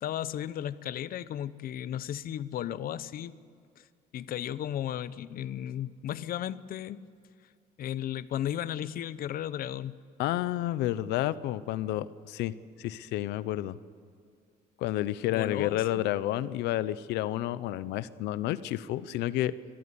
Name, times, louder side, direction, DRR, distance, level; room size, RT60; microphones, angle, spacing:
voice 1, 0.0-3.3 3.8-3.9 4.1-7.1 7.8-10.0 15.3-16.0, left 11 dB, 60° left, 16 dB, 0.8 m, -35 dB
voice 2, 10.2-12.5 12.8-13.8 14.8-19.5, left 14 dB, 85° left, 17 dB, 0.8 m, -30 dB
23.0 x 14.0 x 9.8 m, 2.4 s
cardioid pair, 110°, 17 cm